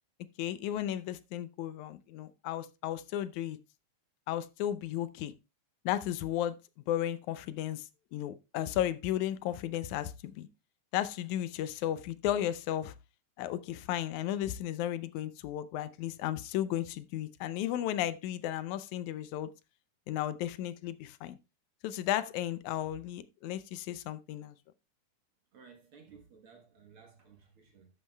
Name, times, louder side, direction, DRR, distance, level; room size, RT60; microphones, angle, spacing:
voice 1, 0.4-3.6 4.3-5.3 5.9-6.6 6.9-7.8 8.1-10.5 10.9-12.9 13.4-19.5 20.1-21.4 21.8-24.6, left 12 dB, 80° left, 2.0 m, -34 dB
voice 2, 25.5-27.9, right 6 dB, 55° right, 1.8 m, -57 dB
12.0 x 8.4 x 2.2 m
omnidirectional pair, 3.4 m